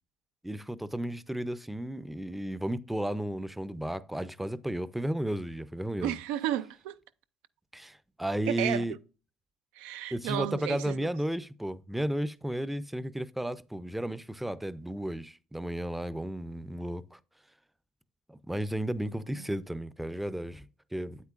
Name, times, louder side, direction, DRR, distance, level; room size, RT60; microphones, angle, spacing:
voice 1, 0.4-6.1 7.7-8.9 10.1-17.2 18.3-21.2, right 1 dB, 5° right, 0.4 m, -33 dB
voice 2, 6.0-7.0 8.5-8.8 9.8-11.0 19.3-19.6, right 12 dB, 85° right, 0.3 m, -33 dB
8.2 x 8.1 x 2.4 m
supercardioid pair, 85°, 2 cm